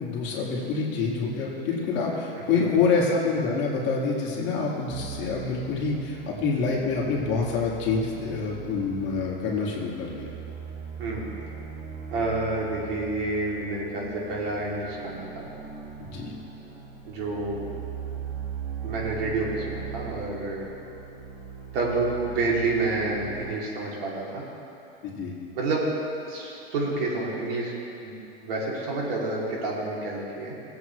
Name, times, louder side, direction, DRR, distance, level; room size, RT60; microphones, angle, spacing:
voice 1, 0.0-10.3 16.0-16.3 25.0-25.3, left 4 dB, 40° left, -4 dB, 2.0 m, -27 dB
sound 1, 4.9-23.5, right 7 dB, 45° right, 1.6 m, -40 dB
voice 2, 12.1-15.5 17.1-17.7 18.8-20.7 21.7-24.4 25.5-25.9 26.2-27.7 28.0-28.1 28.4-30.5, right 2 dB, 70° right, -4 dB, 2.9 m, -29 dB
18.5 x 8.0 x 3.2 m, 2.8 s
supercardioid pair, 145°, 30 cm